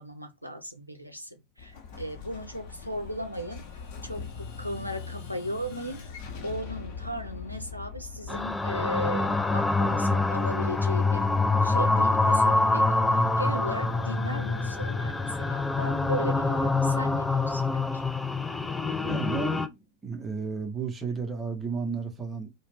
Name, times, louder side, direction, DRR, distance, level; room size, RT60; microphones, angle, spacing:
voice 1, 0.0-3.6 4.0-6.0 6.4-11.4 11.6-17.7 17.9-18.0, equal, 90° right, 0.5 m, -36 dB
Explosion, 1.6-10.2, left 5 dB, 50° left, 0.8 m, -42 dB
sound 1, 8.3-19.7, left 3 dB, 10° left, 0.3 m, -25 dB
sound 2, 8.7-15.0, left 4 dB, 70° left, 0.5 m, -44 dB
voice 2, 19.0-22.5, right 5 dB, 15° right, 0.7 m, -33 dB
2.4 x 2.0 x 3.4 m
figure-of-eight pair, 90°, 0 cm